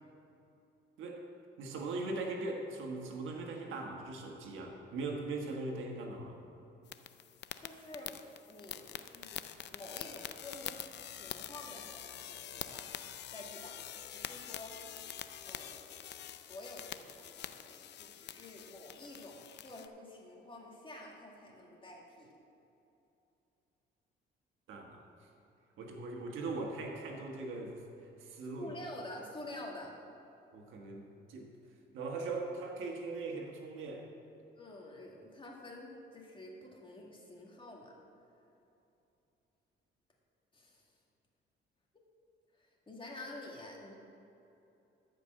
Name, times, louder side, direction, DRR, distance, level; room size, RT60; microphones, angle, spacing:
voice 1, 1.6-6.4 24.7-25.0 25.8-28.7 30.5-31.5 31.9-34.1, right 3 dB, 80° right, 1 dB, 1.5 m, -40 dB
sound 1, 6.9-19.9, left 10 dB, 60° left, 0.5 m, -46 dB
voice 2, 7.6-8.2 8.5-9.4 9.7-13.0 13.3-14.8 15.4-16.0 16.2-22.3 28.6-30.0 34.6-37.9 40.5-40.8 42.6-43.9, left 1 dB, 25° left, -1 dB, 2.1 m, -49 dB
13.5 x 5.3 x 6.4 m, 2.8 s
cardioid pair, 90°, 20 cm